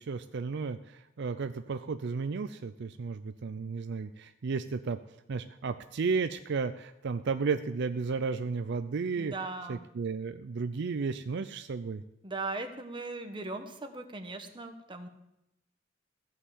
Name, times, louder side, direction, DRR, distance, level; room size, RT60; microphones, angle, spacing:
voice 1, 0.0-5.0 5.3-9.3 9.7-12.0, right 4 dB, 60° right, 10 dB, 0.5 m, -33 dB
voice 2, 9.2-9.9 12.2-15.1, right 3 dB, 25° right, 6 dB, 1.1 m, -38 dB
14.5 x 5.6 x 8.2 m, 0.86 s
head